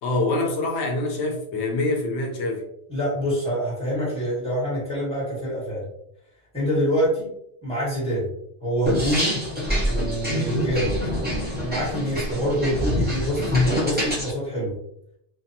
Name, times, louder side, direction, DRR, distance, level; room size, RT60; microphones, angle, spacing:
voice 1, 0.0-2.6, left 2 dB, 80° left, 1 dB, 0.9 m, -25 dB
voice 2, 2.9-5.9 6.5-7.3 7.6-8.3 8.6-9.4 9.9-10.9 11.6-14.7, equal, 5° left, -9 dB, 1.4 m, -26 dB
sound 1, 8.9-14.3, left 1 dB, 10° right, 0.8 m, -25 dB
2.6 x 2.2 x 2.6 m, 0.75 s
omnidirectional pair, 1.1 m